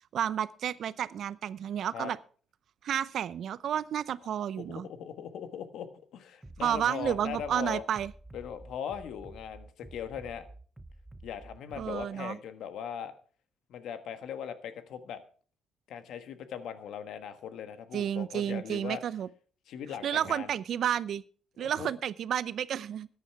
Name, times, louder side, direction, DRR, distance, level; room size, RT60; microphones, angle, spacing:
voice 1, 0.1-2.2 2.8-4.9 6.6-8.1 11.8-12.4 17.9-19.3 20.0-21.2 21.6-23.1, right 9 dB, 65° right, 18 dB, 0.6 m, -31 dB
voice 2, 4.6-7.8 8.3-10.5 11.2-13.1 13.7-15.2 15.9-19.0 19.7-20.5 21.6-21.9, left 8 dB, 80° left, 10 dB, 1.4 m, -39 dB
Bass drum, 6.4-12.0, right 2 dB, 10° right, 0.9 m, -50 dB
14.0 x 9.8 x 4.7 m, 0.42 s
cardioid pair, 90°, 0 cm